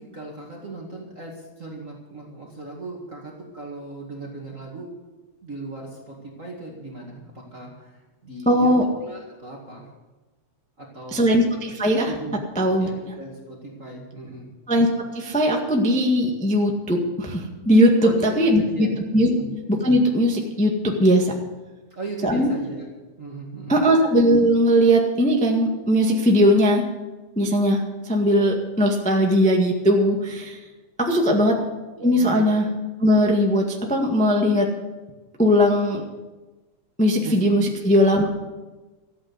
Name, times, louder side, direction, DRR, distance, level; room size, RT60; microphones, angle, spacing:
voice 1, 0.0-4.9 5.4-8.7 9.0-9.9 10.8-11.5 12.1-12.4 12.8-14.5 18.0-19.0 19.3-19.5 21.9-22.9 23.2-23.8 31.3-31.5 32.0-32.5 37.2-37.6, right 2 dB, 30° right, -2 dB, 2.0 m, -37 dB
voice 2, 8.4-8.8 11.1-12.1 12.5-12.9 14.7-14.9 15.1-18.9 19.1-19.3 19.7-21.3 22.2-22.5 23.7-26.8 27.4-27.8 28.0-30.6 31.0-31.6 32.0-32.7 33.0-34.7 35.4-36.0 37.0-38.3, equal, 5° left, 1 dB, 0.8 m, -19 dB
14.0 x 8.9 x 8.0 m, 1.2 s
omnidirectional pair, 3.5 m